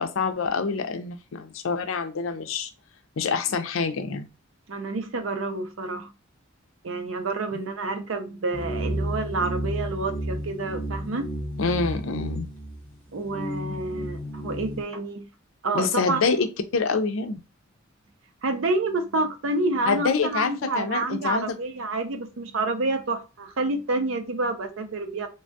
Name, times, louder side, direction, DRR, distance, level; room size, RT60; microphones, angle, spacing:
voice 1, 0.0-2.7 3.2-4.3 11.6-12.5 15.7-16.5 16.7-17.4 19.9-21.6, left 5 dB, 75° left, 0.5 m, -26 dB
voice 2, 4.7-6.1 6.8-11.3 13.1-15.3 15.6-16.2 18.4-25.3, right 2 dB, 75° right, 0.5 m, -28 dB
sound 1, 8.5-14.8, equal, 5° left, 0.8 m, -32 dB
3.2 x 2.2 x 2.6 m
head